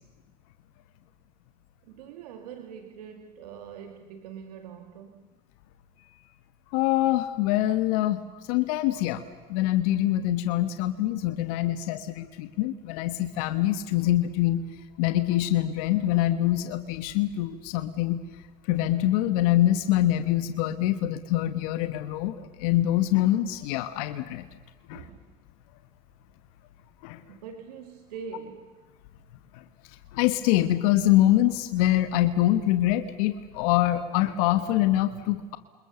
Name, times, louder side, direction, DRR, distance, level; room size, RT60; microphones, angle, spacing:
voice 1, 1.8-5.3 24.9-25.2 27.3-28.7, right 7 dB, 85° right, 5 dB, 2.1 m, -43 dB
voice 2, 6.7-9.2 9.5-14.6 15.0-18.2 18.7-24.4 24.9-25.0 27.0-27.2 29.5-29.6 30.1-35.6, left 14 dB, 75° left, 10 dB, 1.3 m, -24 dB
29.0 x 26.5 x 7.0 m, 1.4 s
hypercardioid pair, 70°, 19 cm